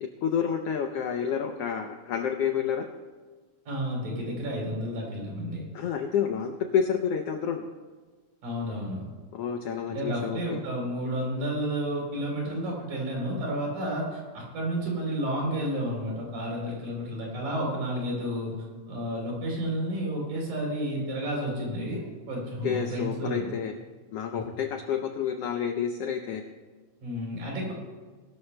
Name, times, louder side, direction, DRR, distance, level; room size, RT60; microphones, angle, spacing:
voice 1, 0.0-2.9 5.7-7.7 9.3-10.6 22.6-23.7 24.1-26.4, left 7 dB, 85° left, 5 dB, 1.3 m, -29 dB
voice 2, 3.7-5.6 8.4-9.0 9.9-18.5 18.9-23.4 24.3-24.4 27.0-27.7, equal, 75° right, -2 dB, 5.0 m, -31 dB
20.5 x 13.0 x 2.2 m, 1.4 s
omnidirectional pair, 3.5 m